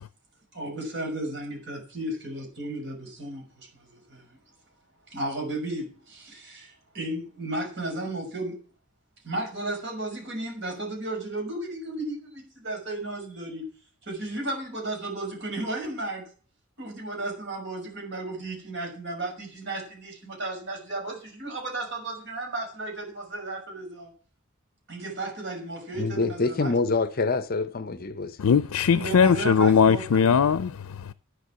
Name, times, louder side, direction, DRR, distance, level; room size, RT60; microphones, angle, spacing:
voice 1, 0.5-4.4 5.1-8.6 9.2-13.6 14.0-16.3 16.8-24.1 24.9-26.7 28.9-30.3, right 2 dB, 55° right, 6.4 m, -34 dB
voice 2, 25.9-28.4, left 3 dB, 45° left, 0.6 m, -26 dB
voice 3, 28.4-31.1, left 6 dB, 85° left, 0.5 m, -20 dB
10.0 x 8.3 x 7.4 m
head